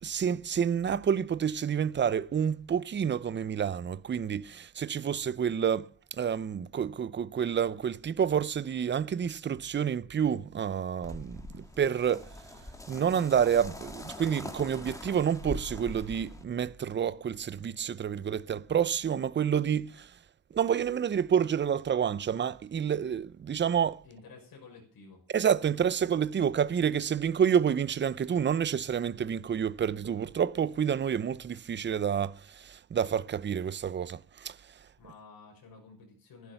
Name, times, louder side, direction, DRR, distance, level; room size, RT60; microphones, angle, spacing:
voice 1, 0.0-12.5 12.9-20.2 20.5-24.0 25.3-34.9, right 8 dB, 30° right, 0.6 m, -29 dB
sound 1, 11.0-16.4, left 1 dB, 10° left, 1.7 m, -43 dB
voice 2, 24.0-25.2 35.0-36.5, left 4 dB, 80° left, 6.5 m, -52 dB
14.0 x 12.0 x 5.8 m
wide cardioid pair, 165°, 35 cm